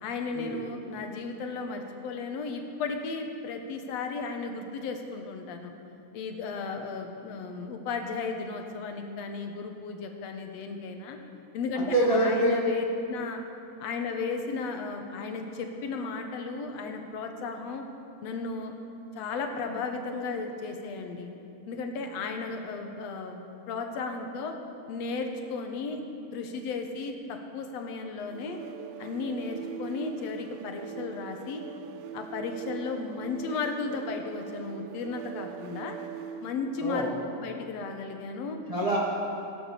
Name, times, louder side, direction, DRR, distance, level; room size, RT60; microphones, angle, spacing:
voice 1, 0.0-5.7 6.1-11.2 11.5-13.4 13.8-17.8 18.2-18.7 19.2-21.3 21.7-24.6 24.9-26.0 26.3-28.6 29.0-31.6 32.1-36.0 36.4-38.6, left 4 dB, 65° left, 4 dB, 2.0 m, -34 dB
voice 2, 11.7-12.6 36.8-37.1 38.7-39.0, right 1 dB, 30° right, -4 dB, 0.6 m, -25 dB
sound 1, 28.2-36.6, right 8 dB, 85° right, 1.4 m, -41 dB
16.0 x 11.0 x 6.7 m, 2.7 s
omnidirectional pair, 3.7 m